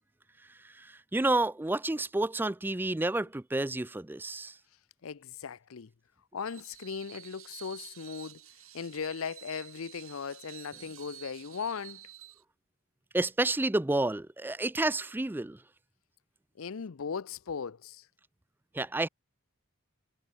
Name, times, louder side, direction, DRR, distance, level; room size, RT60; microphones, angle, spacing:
voice 1, 0.6-4.6 13.1-15.6 18.7-19.1, right 2 dB, 10° right, 0.3 m, -30 dB
voice 2, 5.0-5.9 6.3-8.4 8.7-12.0 16.6-18.1, left 6 dB, 70° left, 0.6 m, -38 dB
Screech, 6.4-12.4, right 14 dB, 70° right, 6.2 m, -50 dB
Drum, 10.7-12.9, equal, 15° left, 6.4 m, -67 dB
head